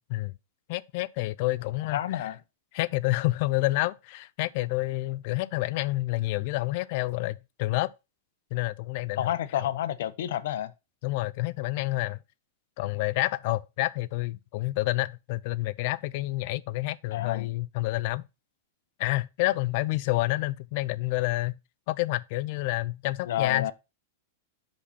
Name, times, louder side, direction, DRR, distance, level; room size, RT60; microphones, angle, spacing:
voice 1, 0.7-2.2 2.7-7.9 8.5-9.3 11.0-12.2 12.8-18.2 19.0-21.5 21.9-23.7, left 19 dB, 45° left, 0.4 m, -28 dB
voice 2, 1.9-2.4 9.2-10.7 17.1-17.5 23.3-23.7, left 11 dB, 65° left, 0.7 m, -29 dB
6.8 x 5.3 x 4.1 m
supercardioid pair, 160°, 0 cm